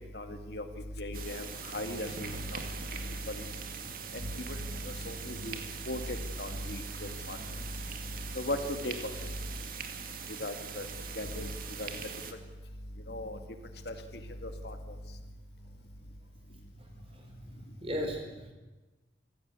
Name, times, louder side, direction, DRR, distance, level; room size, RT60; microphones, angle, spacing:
voice 1, 0.1-0.6 1.0-1.4 1.7-2.6 3.3-3.5 4.5-4.6 4.8-5.6 5.9-7.4 8.4-8.9 10.4-10.9 11.2-11.5 11.8-11.9 13.1-13.4 13.9-14.0 14.4-14.8, left 1 dB, 55° left, 7 dB, 2.1 m, -37 dB
sound 1, 1.1-12.3, right 6 dB, 45° right, 2.0 m, -42 dB
voice 2, 16.8-18.5, equal, 30° right, 3 dB, 4.7 m, -38 dB
25.5 x 16.0 x 8.4 m, 1.1 s
head